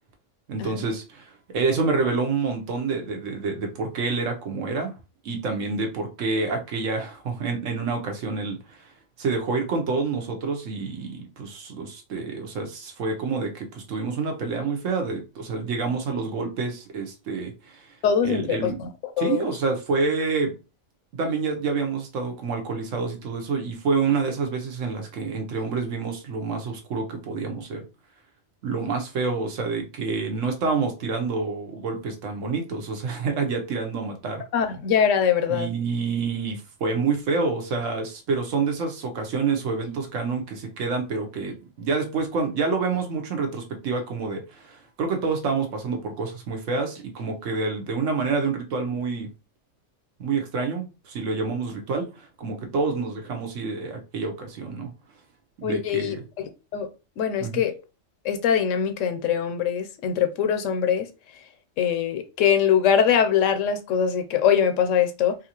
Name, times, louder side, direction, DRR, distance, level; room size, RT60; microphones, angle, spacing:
voice 1, 0.5-4.9 5.2-8.9 9.2-17.9 18.2-18.8 19.2-20.5 21.1-27.8 28.6-34.4 35.5-49.3 50.2-54.9 55.6-56.2 57.4-57.6, right 4 dB, 85° right, 1.2 m, -28 dB
voice 2, 18.0-19.5 34.5-35.7 55.6-56.9 57.2-57.7 58.2-61.1 61.3-61.4 61.8-65.4, left 8 dB, 90° left, 1.0 m, -23 dB
3.9 x 2.5 x 2.9 m
omnidirectional pair, 1.3 m